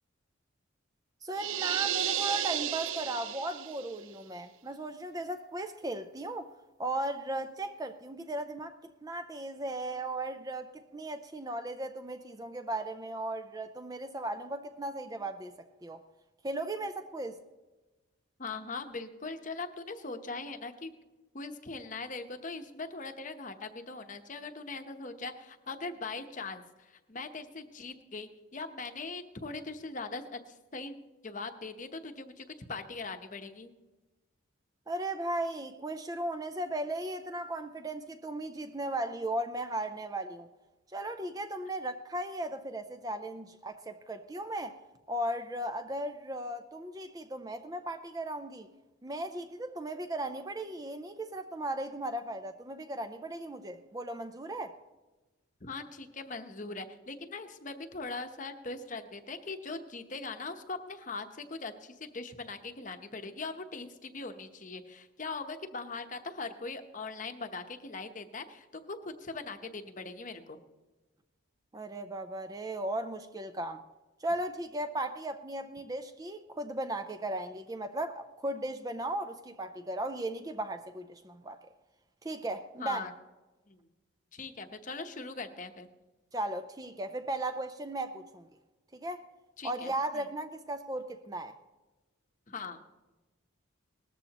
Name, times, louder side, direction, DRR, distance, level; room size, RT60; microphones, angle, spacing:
voice 1, 1.2-6.5 6.8-15.5 15.8-16.0 16.4-17.4 34.9-40.5 40.9-44.8 45.1-48.7 49.0-54.8 71.7-73.8 74.2-81.6 82.2-83.1 86.3-88.5 88.9-89.2 89.6-91.5, right 1 dB, 15° right, 0.4 m, -36 dB
sound 1, 1.4-3.9, right 11 dB, 70° right, 0.5 m, -33 dB
voice 2, 18.4-20.9 21.3-31.0 31.2-33.7 55.6-70.6 82.8-83.1 83.7-83.9 84.3-85.9 89.6-90.2 92.5-92.8, left 3 dB, 35° left, 0.9 m, -41 dB
19.0 x 14.0 x 2.9 m
head